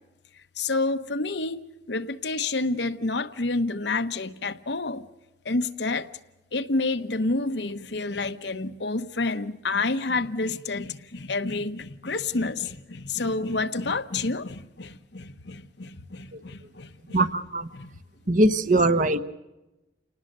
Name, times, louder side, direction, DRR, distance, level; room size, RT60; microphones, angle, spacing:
voice 1, 0.6-1.6 1.9-5.1 5.4-6.1 6.5-17.2 17.7-17.9, left 3 dB, 70° left, 1.0 m, -29 dB
voice 2, 17.1-17.7 18.3-19.2, right 2 dB, 45° right, 1.1 m, -21 dB
29.0 x 19.0 x 6.7 m
head